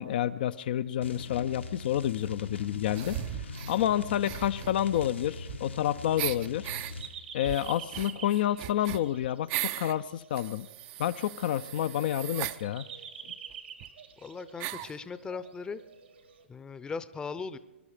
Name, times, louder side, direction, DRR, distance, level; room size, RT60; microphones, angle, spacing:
voice 1, 0.0-3.2 3.5-6.7 7.3-10.7 11.0-12.8, left 11 dB, 55° left, 10 dB, 0.5 m, -29 dB
sound 1, 1.0-7.1, left 3 dB, 90° left, 1.6 m, -41 dB
sound 2, 3.0-3.8 4.2-5.8 6.2-6.9 7.4-9.9 10.3-12.6 13.5-13.6 13.8-13.9 14.6-15.0, right 15 dB, 35° right, 0.6 m, -38 dB
sound 3, 6.6-16.4, right 7 dB, 70° right, 1.9 m, -48 dB
voice 2, 14.2-15.8 16.5-17.6, left 5 dB, 15° left, 14 dB, 0.7 m, -38 dB
23.5 x 11.5 x 5.0 m, 1.1 s
figure-of-eight pair, 115°, 6 cm